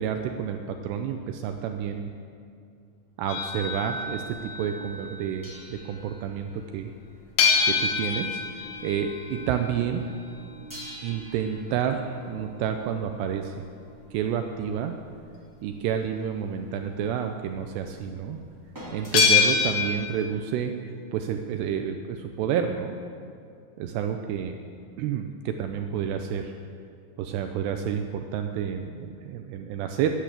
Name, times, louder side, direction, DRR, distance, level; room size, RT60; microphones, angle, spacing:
voice 1, 0.0-2.1 3.2-6.9 7.7-8.4 8.8-10.0 11.0-13.5 14.1-14.9 15.6-18.4 18.9-20.8 21.1-22.9 23.8-24.6 25.0-26.5 27.2-30.1, right 8 dB, 85° right, 6 dB, 2.4 m, -29 dB
sound 1, 3.3-5.5 7.4-14.1 19.1-19.9, left 5 dB, 75° left, 3.6 m, -27 dB
sound 2, 5.4-8.6 8.8-9.1 10.7-13.4 18.7-19.7 20.7-20.8, equal, 5° right, 2.0 m, -47 dB
13.5 x 10.5 x 7.5 m, 2.4 s
omnidirectional pair, 5.5 m